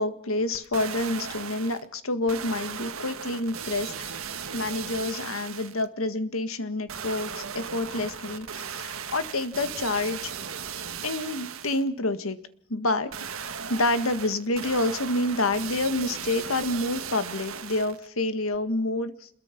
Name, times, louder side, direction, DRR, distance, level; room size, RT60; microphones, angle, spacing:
voice 1, 0.0-4.2 4.5-10.3 11.0-12.4 12.7-13.1 13.7-19.3, left 2 dB, 85° left, 10 dB, 1.8 m, -28 dB
sound 1, 0.5-1.9 2.3-5.9 6.9-11.9 13.1-18.1 18.5-18.6, right 7 dB, 90° right, 1.7 m, -37 dB
27.0 x 21.5 x 6.0 m, 0.62 s
head